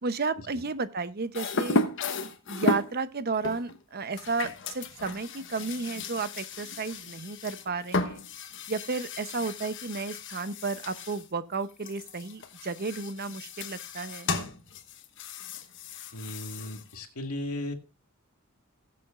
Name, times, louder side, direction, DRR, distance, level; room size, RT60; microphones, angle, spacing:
voice 1, 0.0-1.8 2.5-8.2 8.7-14.3, right 4 dB, 45° right, 12 dB, 0.8 m, -33 dB
sound 1, 1.3-3.0 3.4-11.3 11.5-17.0, left 3 dB, 60° left, 1.1 m, -34 dB
voice 2, 16.1-17.7, left 1 dB, 90° left, 5 dB, 1.9 m, -36 dB
19.5 x 7.8 x 2.4 m, 0.28 s
head